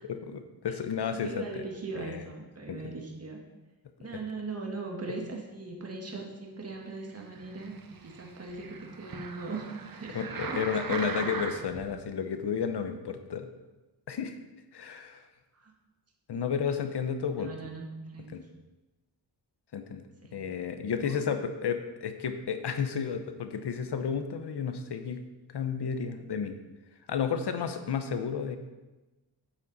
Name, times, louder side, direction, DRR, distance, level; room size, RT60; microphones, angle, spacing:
voice 1, 0.0-1.6 2.0-2.2 2.7-2.9 10.1-13.5 14.1-14.4 14.7-15.2 16.3-17.5 18.3-18.4 19.7-20.0 20.3-25.2 25.5-26.6 27.1-28.6, left 6 dB, 70° left, 8 dB, 1.0 m, -32 dB
voice 2, 1.1-3.4 4.0-7.7 8.0-9.7 9.9-10.2 10.5-10.6 15.6-15.7 17.4-18.4 20.2-20.4 21.0-21.2, right 3 dB, 35° right, 0 dB, 1.7 m, -39 dB
sound 1, 7.3-11.9 12.5-12.6, right 5 dB, 55° right, 1.0 m, -39 dB
9.0 x 7.3 x 4.1 m, 1.1 s
wide cardioid pair, 80°, 41 cm